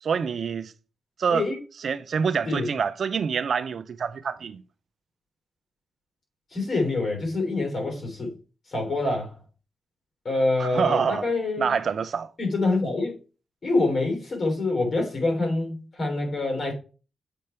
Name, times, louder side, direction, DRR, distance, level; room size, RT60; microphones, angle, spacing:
voice 1, 0.0-0.7 1.2-1.4 1.8-4.6 10.6-11.2 11.6-12.3, right 6 dB, 65° right, 0.4 m, -26 dB
voice 2, 6.5-8.3 8.7-9.4 10.3-11.7 12.4-13.1 13.6-16.7, left 2 dB, 50° left, 3.5 m, -26 dB
7.6 x 3.5 x 4.3 m
cardioid pair, 75°, 0 cm